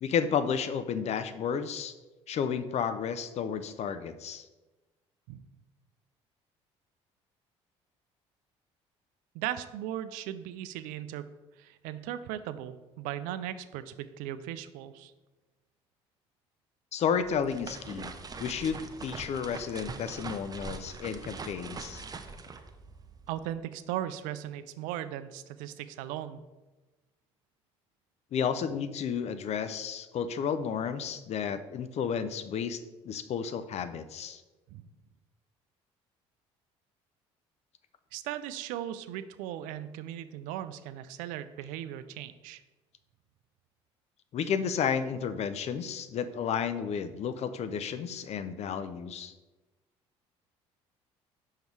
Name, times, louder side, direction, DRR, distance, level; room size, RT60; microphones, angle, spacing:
voice 1, 0.0-1.9 2.3-4.5 16.9-18.1 18.4-22.0 28.3-34.4 44.3-49.3, left 7 dB, 50° left, 11 dB, 0.6 m, -32 dB
voice 2, 9.3-11.3 11.6-15.1 23.3-26.4 34.7-34.9 38.1-42.6, right 11 dB, 80° right, 13 dB, 0.4 m, -38 dB
sound 1, 17.1-23.5, right 4 dB, 30° right, 0.7 m, -43 dB
5.6 x 5.3 x 4.6 m, 1.2 s
supercardioid pair, 70°, 14 cm